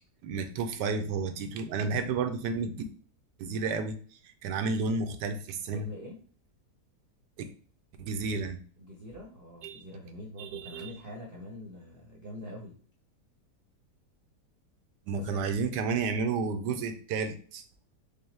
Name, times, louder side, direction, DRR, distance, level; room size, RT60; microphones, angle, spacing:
voice 1, 0.2-2.8 3.4-4.0 4.4-5.9 8.0-8.6 9.6-9.8 10.4-10.9 15.1-17.6, right 4 dB, 85° right, 8 dB, 1.2 m, -31 dB
voice 2, 5.7-6.2 8.8-12.7 15.1-15.5, left 1 dB, 45° right, -1 dB, 0.8 m, -44 dB
5.3 x 2.1 x 3.2 m, 0.43 s
omnidirectional pair, 1.8 m